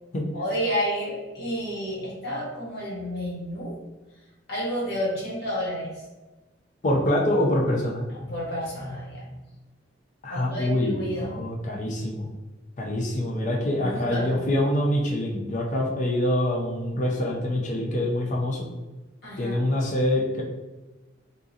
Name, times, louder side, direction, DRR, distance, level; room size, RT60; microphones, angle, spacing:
voice 1, 0.3-3.8 4.5-5.9 8.1-9.2 10.3-11.3 13.8-14.4 19.2-19.6, equal, 60° left, -6 dB, 1.4 m, -30 dB
voice 2, 6.8-8.1 10.2-12.3 12.8-18.7 19.4-20.4, left 1 dB, 40° left, -1 dB, 0.5 m, -25 dB
3.7 x 2.7 x 2.5 m, 1.2 s
head